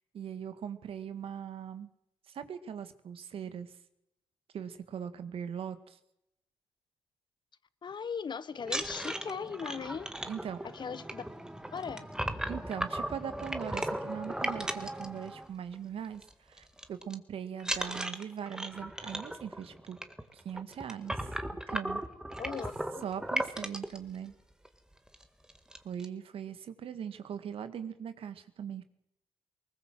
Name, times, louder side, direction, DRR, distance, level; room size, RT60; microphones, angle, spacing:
voice 1, 0.1-1.9 2.3-3.7 4.5-6.0 10.3-10.6 12.5-16.2 16.5-20.0 20.3-21.3 21.7-22.0 23.0-24.3 25.8-28.8, right 8 dB, 70° right, 11 dB, 1.9 m, -40 dB
voice 2, 7.8-10.1 10.6-11.2 11.7-12.1 22.4-23.1, left 6 dB, 50° left, 17 dB, 1.1 m, -38 dB
sound 1, 8.6-15.7 16.0-16.3 16.6-17.1 17.6-24.0 24.6-24.7 25.1-25.2 25.5-26.1, right 1 dB, 5° right, 1.9 m, -37 dB
20.5 x 19.5 x 7.7 m, 0.80 s
cardioid pair, 65°, 10 cm